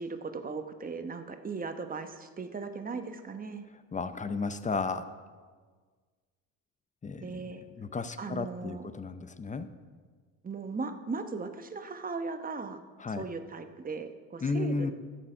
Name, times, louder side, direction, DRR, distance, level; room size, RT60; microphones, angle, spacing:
voice 1, 0.0-3.6 7.2-7.6 8.2-8.9 10.4-12.8 13.1-14.9, right 4 dB, 20° right, 8 dB, 1.0 m, -38 dB
voice 2, 3.9-5.1 7.0-7.5 7.8-9.7 13.0-13.2 14.4-14.9, left 4 dB, 20° left, 12 dB, 0.6 m, -33 dB
12.5 x 7.4 x 5.6 m, 1.5 s
supercardioid pair, 80°, 40 cm